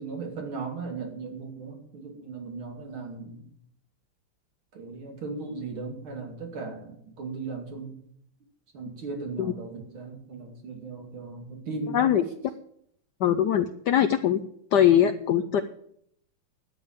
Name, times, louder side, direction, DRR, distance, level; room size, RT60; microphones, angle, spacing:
voice 1, 0.0-3.5 4.7-8.0 8.7-12.1, right 4 dB, 75° right, 3 dB, 3.3 m, -37 dB
voice 2, 11.9-12.2 13.2-14.4 14.7-15.6, left 10 dB, 65° left, 9 dB, 1.1 m, -21 dB
12.0 x 9.0 x 7.4 m, 0.68 s
omnidirectional pair, 2.3 m